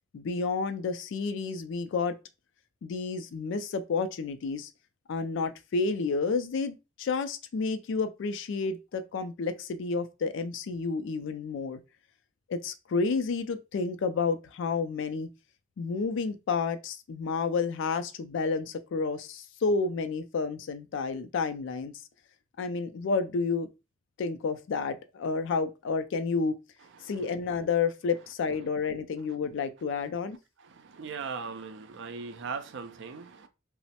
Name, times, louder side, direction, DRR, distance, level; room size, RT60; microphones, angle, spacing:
voice 1, 0.1-2.1 2.8-4.7 5.1-11.8 12.5-15.3 15.8-21.9 22.6-23.7 24.2-26.6 27.0-30.4, left 4 dB, 65° left, 0.4 m, -30 dB
voice 2, 30.8-33.5, right 5 dB, 65° right, 0.4 m, -38 dB
3.1 x 2.0 x 2.7 m
head